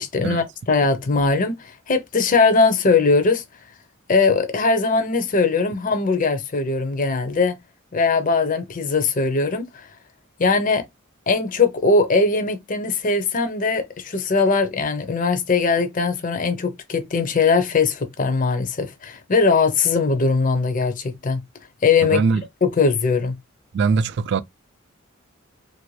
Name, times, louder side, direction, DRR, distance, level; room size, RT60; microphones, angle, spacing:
voice 1, 0.0-3.4 4.1-7.6 7.9-9.9 10.4-10.8 11.3-21.4 21.8-22.2 22.6-23.4, left 4 dB, 40° left, 0.6 m, -20 dB
voice 2, 22.0-22.4 23.7-24.4, right 5 dB, 55° right, 0.3 m, -21 dB
3.0 x 2.6 x 3.1 m
head